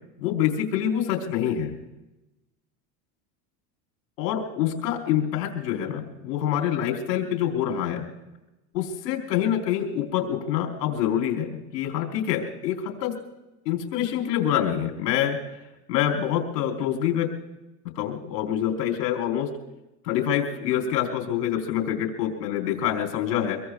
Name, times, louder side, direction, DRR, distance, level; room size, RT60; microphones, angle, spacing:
voice 1, 0.2-1.7 4.2-8.0 8.7-13.2 13.6-15.4 15.9-17.3 17.9-19.5 20.0-23.6, left 10 dB, 80° left, 3 dB, 4.2 m, -26 dB
25.0 x 23.0 x 2.4 m, 0.98 s
supercardioid pair, 105°, 48 cm